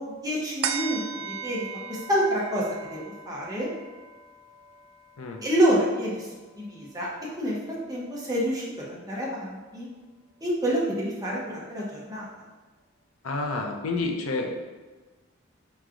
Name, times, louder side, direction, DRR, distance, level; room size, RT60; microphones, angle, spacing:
voice 1, 0.0-3.7 5.4-6.3 6.6-7.1 7.4-9.9 10.4-12.3, equal, 20° right, -5 dB, 0.8 m, -28 dB
sound 1, 0.6-7.4 7.8-7.9, right 7 dB, 80° right, 0.3 m, -38 dB
voice 2, 13.2-14.6, left 3 dB, 85° left, 2 dB, 0.5 m, -29 dB
4.7 x 3.0 x 2.5 m, 1.3 s
head